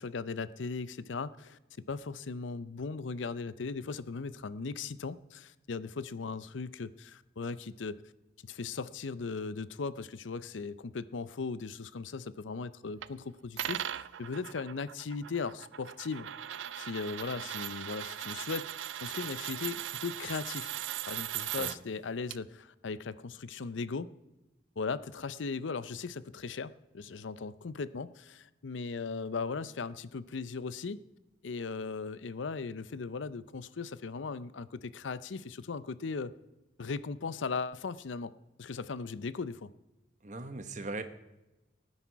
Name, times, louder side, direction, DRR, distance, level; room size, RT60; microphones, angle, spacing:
voice 1, 0.0-1.6 1.9-8.0 8.4-16.3 16.8-20.7 21.1-24.1 24.8-31.0 31.4-36.3 36.8-39.7, left 4 dB, 90° left, 17 dB, 0.6 m, -38 dB
sound 1, 13.0-13.1 13.6-21.8 22.3-22.4, right 11 dB, 90° right, 0.4 m, -39 dB
voice 2, 40.2-41.0, right 2 dB, 40° right, 9 dB, 1.1 m, -39 dB
19.0 x 9.7 x 4.6 m, 1.0 s
head